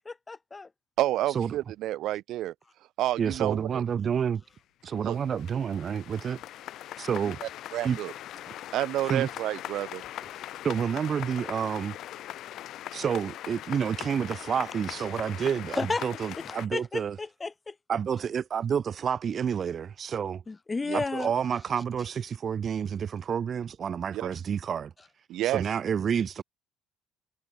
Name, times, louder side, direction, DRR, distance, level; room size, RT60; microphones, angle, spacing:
voice 1, 0.1-0.7 15.7-16.0 16.4-17.7 20.5-21.3, left 3 dB, 15° left, 0.4 m, -33 dB
voice 2, 1.0-2.5 3.0-3.8 5.0-5.2 7.4-8.1 8.7-10.0 20.8-21.0 24.1-24.3 25.3-25.6, right 14 dB, 65° right, 1.1 m, -29 dB
voice 3, 3.2-4.4 4.8-6.4 7.0-7.4 7.8-8.0 9.1-9.3 10.6-12.0 12.9-17.2 17.9-20.4 20.9-24.9 25.5-26.4, right 7 dB, 35° right, 0.6 m, -29 dB
sound 1, 4.5-4.6 4.8-16.7, left 13 dB, 55° left, 4.7 m, -41 dB
cardioid pair, 145°, 0 cm